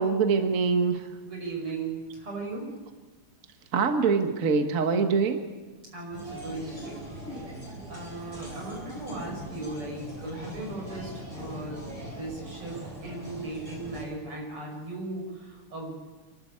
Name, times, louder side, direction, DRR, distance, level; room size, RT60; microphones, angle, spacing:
voice 1, 0.0-1.0 3.7-5.4, right 5 dB, 40° right, 6 dB, 1.6 m, -24 dB
voice 2, 1.2-2.7 5.9-7.1 7.9-11.8 12.1-16.0, right 2 dB, 85° right, 0 dB, 6.8 m, -37 dB
sound 1, 6.1-14.1, equal, 25° right, 5.6 m, -41 dB
27.0 x 12.5 x 8.6 m, 1.3 s
omnidirectional pair, 2.4 m